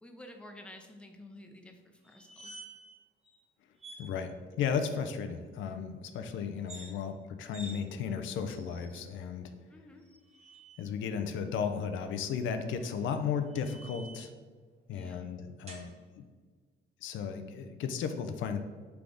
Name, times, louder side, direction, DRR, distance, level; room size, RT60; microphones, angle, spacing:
voice 1, 0.0-2.6 9.7-10.0 14.9-15.3, left 1 dB, 5° left, 4 dB, 0.5 m, -51 dB
sound 1, 2.0-2.9 3.2-3.4 3.8-4.0 6.5-6.9 7.5-7.8 8.5-9.0 10.0-10.8 12.7-14.3 15.7-15.9, right 2 dB, 35° right, 1.1 m, -50 dB
voice 2, 4.0-9.5 10.8-14.3 14.9-16.2 17.0-18.6, left 6 dB, 75° left, 7 dB, 0.4 m, -35 dB
3.5 x 3.4 x 3.8 m, 1.5 s
cardioid pair, 90°, 20 cm